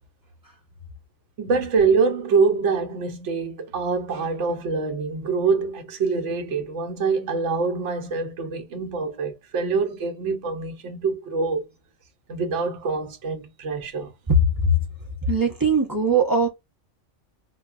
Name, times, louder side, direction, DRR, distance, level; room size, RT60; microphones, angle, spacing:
voice 1, 1.4-11.7 12.3-14.1, right 4 dB, 70° right, 1.0 m, -25 dB
voice 2, 14.3-14.8 15.3-16.5, right 1 dB, 25° right, 0.5 m, -20 dB
3.8 x 2.2 x 2.3 m
omnidirectional pair, 1.3 m